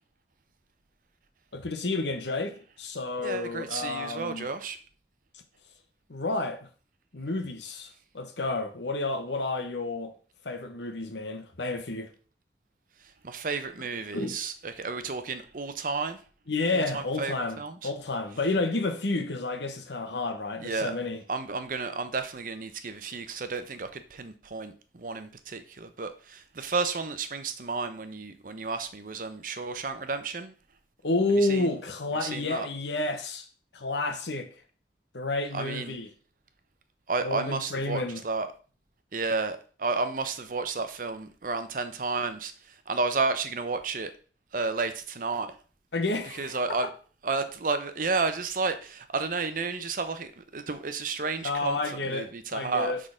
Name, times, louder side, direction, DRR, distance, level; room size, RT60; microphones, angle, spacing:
voice 1, 1.5-4.5 6.1-6.7 7.1-10.1 10.4-12.1 14.1-14.4 16.5-21.2 31.0-33.5 33.7-34.5 35.1-36.1 37.2-38.2 45.9-46.6 51.4-53.0, left 2 dB, 80° left, 1.1 m, -30 dB
voice 2, 3.2-4.8 13.2-16.2 16.7-17.9 20.6-20.9 21.3-30.5 31.5-31.7 32.2-32.7 35.5-35.9 37.1-38.5 39.1-44.1 44.5-45.5 46.4-46.9 47.2-51.8 52.1-52.9, right 4 dB, 50° right, 0.7 m, -32 dB
6.4 x 3.8 x 5.0 m
head